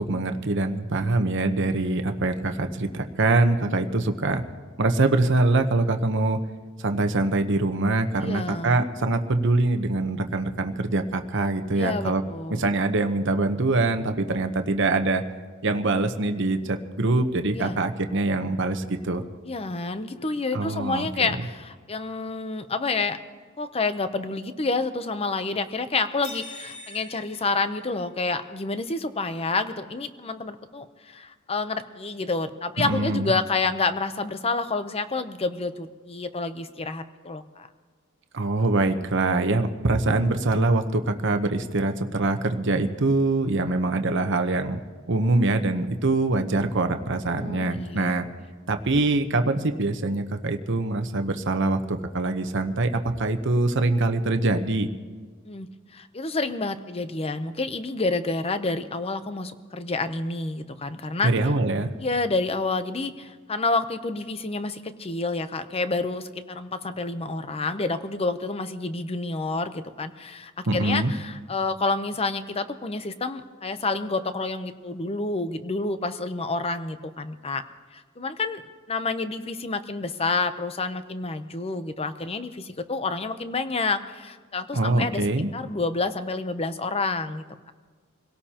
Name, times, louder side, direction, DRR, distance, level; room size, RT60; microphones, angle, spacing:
voice 1, 0.0-4.4 4.8-6.4 6.8-12.2 12.6-15.2 15.6-19.2 20.5-21.3 32.8-33.3 38.3-44.8 45.1-48.3 48.7-54.9 61.2-61.9 70.6-71.1 84.7-85.5, right 2 dB, 60° right, 7 dB, 0.9 m, -24 dB
voice 2, 8.2-8.8 11.7-12.7 17.6-17.8 19.4-23.2 23.6-37.7 47.3-48.5 55.4-61.3 62.0-77.6 77.9-78.6 78.9-85.2 85.5-87.7, left 3 dB, 30° left, 10 dB, 0.7 m, -29 dB
sound 1, 26.2-28.4, left 2 dB, 85° left, 2.7 m, -43 dB
27.0 x 17.5 x 2.9 m, 1.5 s
head